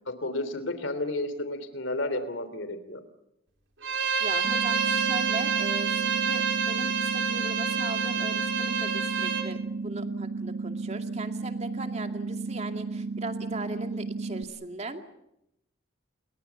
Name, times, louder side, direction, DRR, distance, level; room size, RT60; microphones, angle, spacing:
voice 1, 0.2-3.0, left 2 dB, 70° left, 11 dB, 3.2 m, -32 dB
Bowed string instrument, 3.8-9.5, right 6 dB, 65° right, 3.8 m, -28 dB
voice 2, 4.2-15.0, right 2 dB, 35° right, 6 dB, 2.3 m, -38 dB
sound 1, 4.4-14.4, right 3 dB, 50° right, 1.8 m, -34 dB
29.5 x 22.0 x 7.1 m, 0.82 s
head